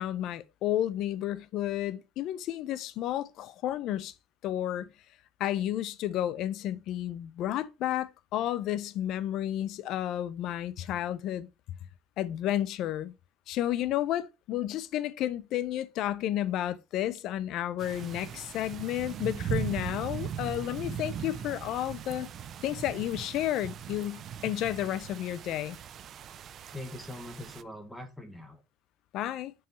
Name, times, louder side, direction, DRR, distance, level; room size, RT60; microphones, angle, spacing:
voice 1, 0.0-4.1 4.4-4.9 5.4-11.5 12.2-13.1 13.5-22.3 22.6-25.8 29.1-29.5, left 12 dB, 55° left, 0.5 m, -32 dB
sound 1, 17.8-27.6, right 8 dB, 40° right, 0.4 m, -39 dB
voice 2, 20.4-21.0 26.7-28.6, left 2 dB, 5° left, 1.1 m, -43 dB
6.1 x 4.6 x 4.2 m
cardioid pair, 145°, 0 cm